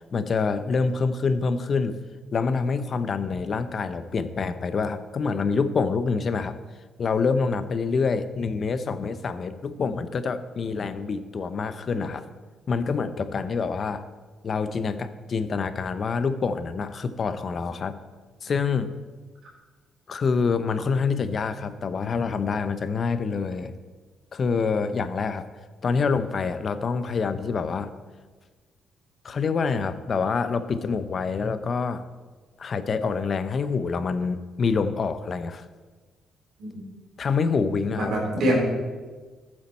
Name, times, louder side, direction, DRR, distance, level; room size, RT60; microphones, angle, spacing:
voice 1, 0.1-2.0 2.3-6.5 7.0-12.3 12.7-14.0 14.4-18.0 18.4-18.9 20.1-23.7 24.3-25.5 25.8-27.9 29.2-32.0 32.6-35.6 37.2-38.1, left 5 dB, 45° left, 11 dB, 0.7 m, -26 dB
voice 2, 38.0-38.7, equal, 70° right, -3 dB, 3.9 m, -24 dB
14.0 x 7.5 x 4.3 m, 1.4 s
cardioid pair, 90°, 0 cm